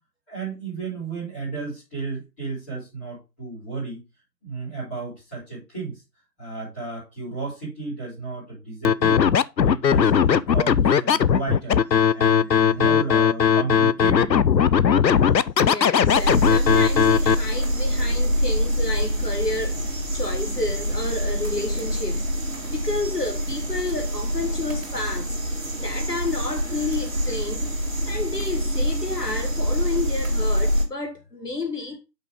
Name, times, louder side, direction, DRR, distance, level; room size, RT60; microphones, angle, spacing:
voice 1, 0.3-4.0 4.4-5.9 6.4-9.2 9.6-11.8 12.1-14.3, right 3 dB, 5° left, 4.0 m, -33 dB
Scratching (performance technique), 8.8-17.3, left 7 dB, 85° left, 0.6 m, -18 dB
voice 2, 15.6-22.3 22.7-25.3 25.7-27.7 28.1-32.0, left 2 dB, 65° left, 1.8 m, -30 dB
sound 1, 16.1-30.8, equal, 50° right, 2.2 m, -25 dB
7.7 x 5.7 x 3.6 m
figure-of-eight pair, 165°, 50 cm